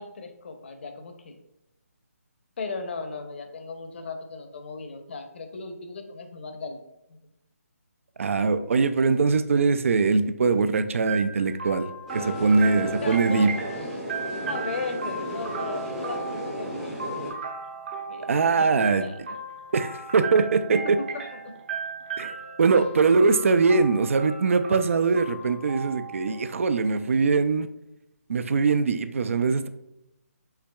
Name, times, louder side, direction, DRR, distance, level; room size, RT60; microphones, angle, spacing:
voice 1, 0.0-1.4 2.6-6.8 7.1-7.2 13.0-13.5 14.5-17.2 18.1-19.2 20.7-21.1 21.3-21.5, left 3 dB, 45° left, 6 dB, 0.7 m, -37 dB
voice 2, 8.2-11.9 12.1-13.5 18.3-19.0 19.7-21.0 22.2-27.7 28.3-29.7, right 4 dB, 55° right, 11 dB, 0.4 m, -22 dB
sound 1, 11.1-26.9, right 4 dB, 40° right, 0.8 m, -36 dB
sound 2, 12.1-17.3, equal, 5° right, 0.6 m, -34 dB
5.7 x 3.4 x 2.3 m, 0.88 s
figure-of-eight pair, 155°, 8 cm